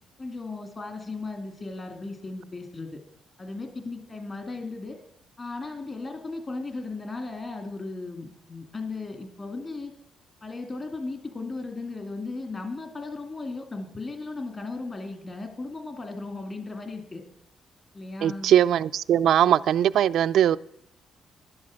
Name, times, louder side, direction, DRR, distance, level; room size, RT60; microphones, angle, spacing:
voice 1, 0.2-3.0 3.4-5.0 5.4-9.9 10.4-17.2 17.9-18.5, left 3 dB, 35° left, 2.3 m, -36 dB
voice 2, 18.2-20.6, right 10 dB, 70° right, 0.4 m, -20 dB
11.5 x 11.0 x 6.4 m
cardioid pair, 90°, 0 cm